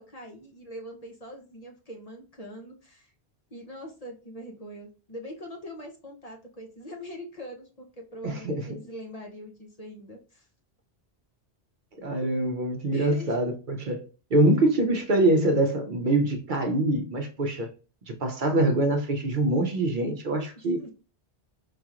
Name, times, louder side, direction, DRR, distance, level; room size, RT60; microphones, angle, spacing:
voice 1, 0.0-3.1 3.5-10.5 12.9-13.4 14.5-14.7 20.8-20.9, equal, 40° left, 0.8 m, -42 dB
voice 2, 8.2-8.7 12.0-14.0 14.3-17.7 18.1-20.8, right 1 dB, 55° right, 0.8 m, -24 dB
4.9 x 2.9 x 2.4 m
omnidirectional pair, 1.1 m